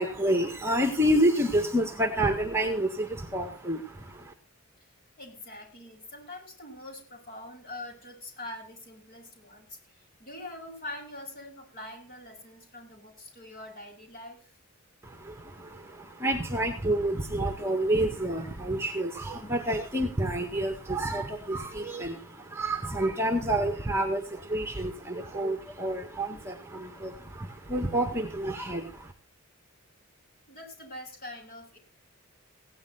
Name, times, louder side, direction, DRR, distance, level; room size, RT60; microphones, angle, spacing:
voice 1, 0.0-4.3 15.0-29.1, right 1 dB, 10° right, 4 dB, 1.9 m, -29 dB
voice 2, 5.2-14.5 30.5-31.8, left 1 dB, 45° left, 2 dB, 6.0 m, -44 dB
17.0 x 10.5 x 4.2 m, 0.35 s
head